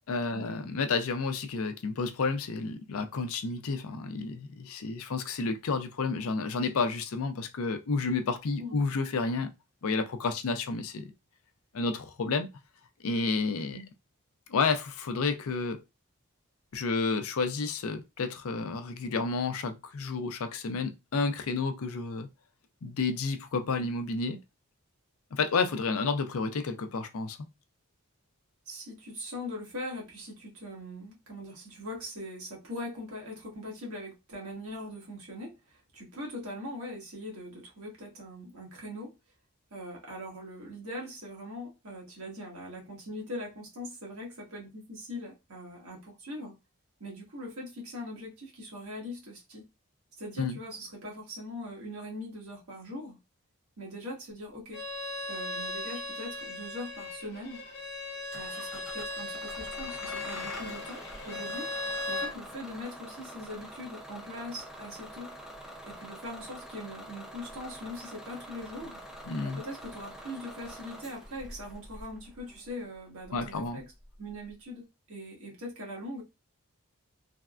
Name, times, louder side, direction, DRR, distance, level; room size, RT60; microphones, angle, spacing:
voice 1, 0.1-9.5 9.8-11.1 11.7-12.5 13.0-13.8 14.5-15.8 16.7-22.3 22.8-24.4 25.3-27.4 50.4-50.6 69.3-69.6 73.3-73.8, left 4 dB, 75° left, 0.4 m, -30 dB
voice 2, 28.7-39.1 39.7-46.6 47.0-49.6 50.2-53.2 53.8-54.8 55.3-57.6 58.3-61.0 61.3-61.7 62.1-65.3 65.8-69.0 69.4-73.8 74.2-76.2, left 1 dB, 75° right, 1.3 m, -41 dB
Bowed string instrument, 54.7-62.3, left 2 dB, 45° left, 1.1 m, -37 dB
Bus / Engine starting, 58.3-74.5, equal, ahead, 0.4 m, -46 dB
3.4 x 2.1 x 2.4 m
head